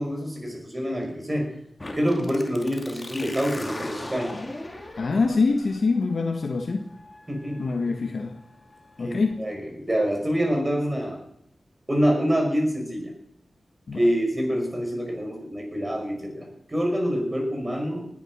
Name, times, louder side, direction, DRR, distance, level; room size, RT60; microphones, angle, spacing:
voice 1, 0.0-1.5 1.9-4.3 7.3-7.8 9.0-11.2 11.9-13.1 13.9-18.1, equal, 20° right, 2 dB, 5.5 m, -26 dB
sound 1, 1.8-9.3, left 1 dB, 25° left, 2.5 m, -40 dB
voice 2, 5.0-6.8 7.6-8.3 9.0-9.4 13.9-14.0, left 4 dB, 65° left, 4 dB, 1.4 m, -24 dB
20.0 x 10.0 x 6.2 m, 0.73 s
wide cardioid pair, 85°, 0 cm